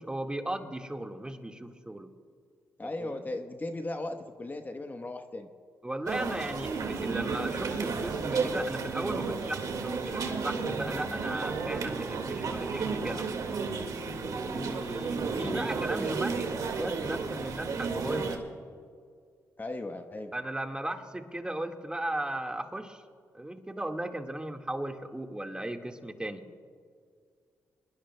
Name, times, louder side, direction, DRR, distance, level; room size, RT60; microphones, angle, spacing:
voice 1, 0.0-2.1 3.0-3.3 5.8-13.5 14.2-18.4 20.3-23.0 23.3-26.4, right 1 dB, 15° right, 4 dB, 1.7 m, -36 dB
voice 2, 2.8-5.5 15.4-15.6 19.6-20.3, left 2 dB, 30° left, 6 dB, 1.0 m, -37 dB
sound 1, 6.1-18.4, right 4 dB, 70° right, 1.9 m, -32 dB
23.5 x 21.0 x 2.2 m, 2.1 s
cardioid pair, 60°, 6 cm